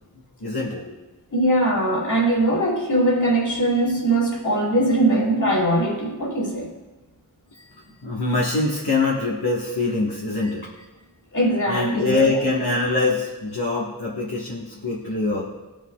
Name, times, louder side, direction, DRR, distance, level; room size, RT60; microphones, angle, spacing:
voice 1, 0.4-0.8 8.0-10.7 11.7-15.4, left 2 dB, 65° left, -6 dB, 1.5 m, -23 dB
voice 2, 1.3-6.7 11.3-12.4, right 1 dB, 45° left, -1 dB, 2.4 m, -21 dB
16.0 x 7.0 x 2.3 m, 1.1 s
wide cardioid pair, 55°, 40 cm